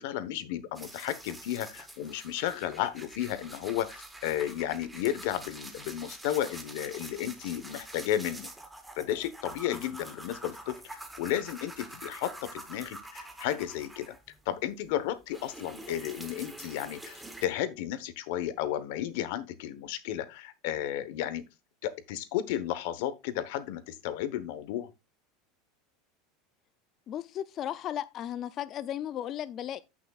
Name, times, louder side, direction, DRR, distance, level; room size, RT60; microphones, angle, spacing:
voice 1, 0.0-8.5 8.9-14.1 14.5-21.4 21.8-24.9, left 11 dB, 60° left, 1.0 m, -33 dB
sound 1, 0.7-14.5 14.8-17.4, right 1 dB, 5° right, 1.0 m, -46 dB
voice 2, 9.7-10.0 27.1-29.8, left 11 dB, 30° left, 0.3 m, -35 dB
14.5 x 6.0 x 2.3 m
supercardioid pair, 175°, 0 cm